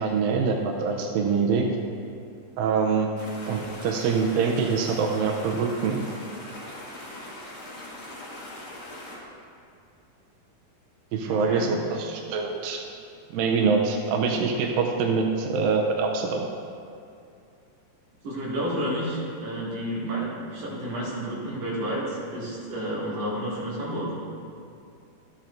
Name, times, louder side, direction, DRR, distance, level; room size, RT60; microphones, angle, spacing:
voice 1, 0.0-1.7 2.6-3.1 3.5-6.0 11.1-12.8 13.3-16.4, right 5 dB, 90° right, 2 dB, 2.4 m, -24 dB
sound 1, 3.2-9.2, left 1 dB, 65° left, 0.7 m, -41 dB
voice 2, 11.2-11.7 18.2-24.1, right 1 dB, 50° right, -7 dB, 3.0 m, -30 dB
13.0 x 8.6 x 2.6 m, 2.5 s
omnidirectional pair, 4.0 m